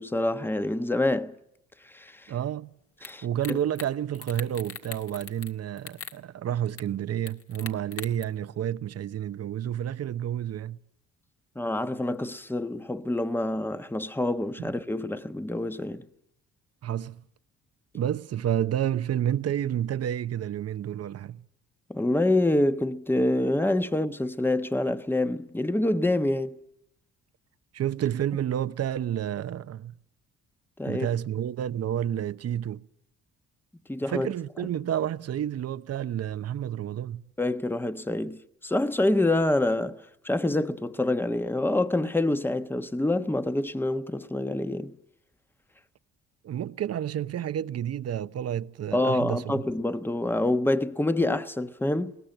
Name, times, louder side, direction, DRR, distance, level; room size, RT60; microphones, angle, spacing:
voice 1, 0.0-1.3 1.8-2.3 3.0-3.6 11.5-16.0 21.9-26.6 30.8-31.1 33.9-34.3 37.4-44.9 48.9-52.2, left 1 dB, 5° left, 1.2 m, -26 dB
voice 2, 2.3-2.8 3.2-10.8 14.6-14.7 16.8-17.2 17.9-21.4 27.7-29.9 30.9-32.9 34.1-37.2 46.4-49.6, right 10 dB, 55° right, 0.9 m, -30 dB
sound 1, 3.0-3.1 3.4-3.9 4.1-5.5 5.8-6.2 6.8-6.9 7.3-8.2, left 6 dB, 50° left, 2.1 m, -40 dB
21.5 x 19.0 x 9.0 m
cardioid pair, 90°, 30 cm